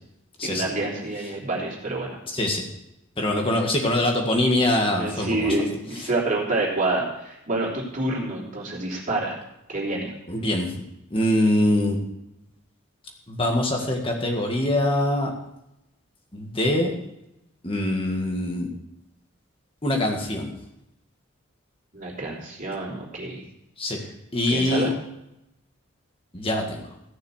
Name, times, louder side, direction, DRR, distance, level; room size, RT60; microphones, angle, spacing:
voice 1, 0.4-2.2 5.0-9.4 9.7-10.1 21.9-23.4 24.5-24.9, right 2 dB, 35° right, -4 dB, 3.4 m, -27 dB
voice 2, 2.3-2.6 3.2-5.6 6.0-6.1 10.3-10.7 11.1-12.0 13.3-15.3 16.3-16.9 17.6-18.7 19.8-20.5 23.8-24.0 24.3-24.9 26.3-26.8, left 1 dB, 25° left, 1 dB, 1.9 m, -23 dB
15.0 x 6.6 x 6.5 m, 0.85 s
head